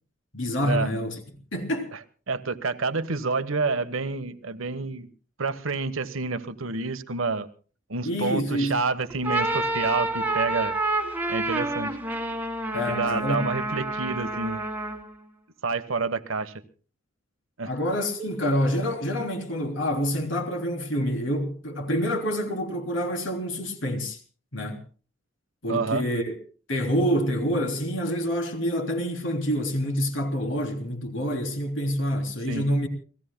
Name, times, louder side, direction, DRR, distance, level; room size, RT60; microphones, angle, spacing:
voice 1, 0.3-1.2 1.5-1.9 8.0-8.7 12.7-13.4 17.7-24.2 24.5-24.8 25.6-26.4 26.7-32.9, equal, 65° left, 3.4 m, -27 dB
voice 2, 2.3-5.1 5.4-7.5 7.9-10.8 11.3-12.0 12.9-14.6 15.6-16.5 17.6-17.7 25.7-26.0 32.5-32.7, right 4 dB, 80° right, 1.2 m, -28 dB
sound 1, 9.1-15.1, right 2 dB, 10° right, 1.6 m, -28 dB
29.0 x 18.0 x 2.2 m
head